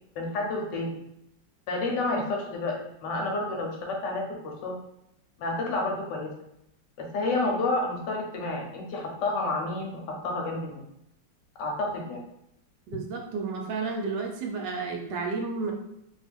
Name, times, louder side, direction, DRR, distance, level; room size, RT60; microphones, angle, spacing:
voice 1, 0.2-0.9 1.7-2.8 3.0-4.3 4.6-4.7 5.4-6.3 7.0-10.8 11.6-12.2 12.9-13.0, left 2 dB, 75° left, 1 dB, 1.2 m, -29 dB
voice 2, 12.9-15.7, right 4 dB, 75° right, 1 dB, 1.2 m, -31 dB
3.0 x 2.3 x 3.4 m, 0.80 s
omnidirectional pair, 2.0 m